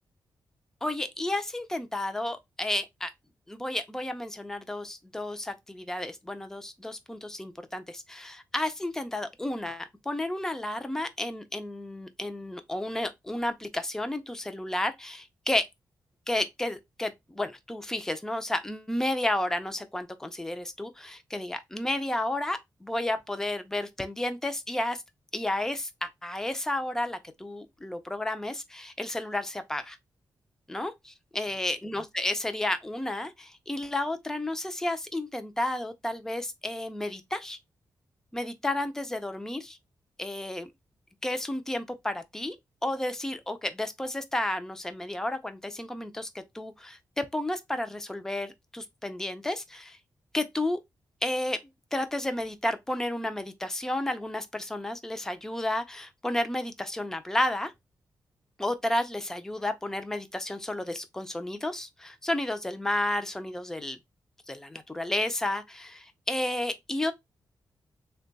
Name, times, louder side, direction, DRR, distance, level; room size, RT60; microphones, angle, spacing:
voice 1, 0.8-3.1 3.5-15.7 16.3-25.0 25.3-30.0 30.7-37.6 38.3-39.8 40.2-40.7 41.2-42.6 42.8-50.0 50.3-50.8 51.2-51.6 51.9-57.7 58.6-64.0 64.5-67.1, left 1 dB, 5° left, 0.5 m, -32 dB
3.6 x 2.2 x 3.9 m
wide cardioid pair, 150°, 7 cm